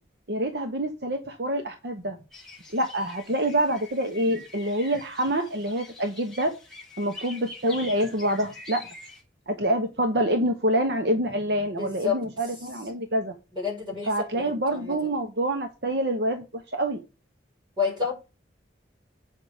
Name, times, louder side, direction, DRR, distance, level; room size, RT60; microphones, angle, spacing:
voice 1, 0.3-2.2 2.7-6.5 7.0-8.9 9.5-13.3 14.1-17.0, right 1 dB, 60° right, 1.0 m, -26 dB
sound 1, 2.3-9.2, left 3 dB, ahead, 2.6 m, -45 dB
voice 2, 11.8-12.2 13.5-15.1 17.8-18.1, left 6 dB, 25° right, 5.3 m, -30 dB
8.4 x 5.5 x 5.0 m
head